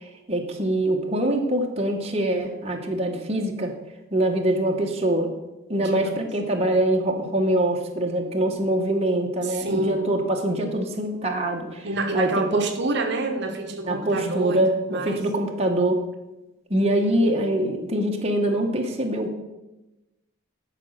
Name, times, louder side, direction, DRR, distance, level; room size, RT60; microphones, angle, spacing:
voice 1, 0.3-3.7 4.1-5.3 5.7-11.8 12.1-12.6 13.8-16.0 16.7-19.4, right 1 dB, 30° right, 1 dB, 1.0 m, -24 dB
voice 2, 5.8-6.1 9.4-10.2 11.8-15.3, right 2 dB, 50° right, 5 dB, 1.0 m, -28 dB
12.0 x 5.0 x 6.4 m, 1.0 s
head